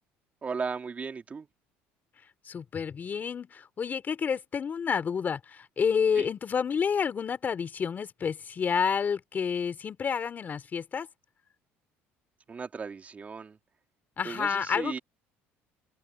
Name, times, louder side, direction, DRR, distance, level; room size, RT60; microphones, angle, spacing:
voice 1, 0.4-1.5 6.1-6.3 12.5-13.6 14.2-15.0, right 5 dB, 30° right, 2.8 m, -36 dB
voice 2, 2.4-11.1 14.2-15.0, left 6 dB, 35° left, 3.0 m, -29 dB
open air
cardioid pair, 105°, 5 cm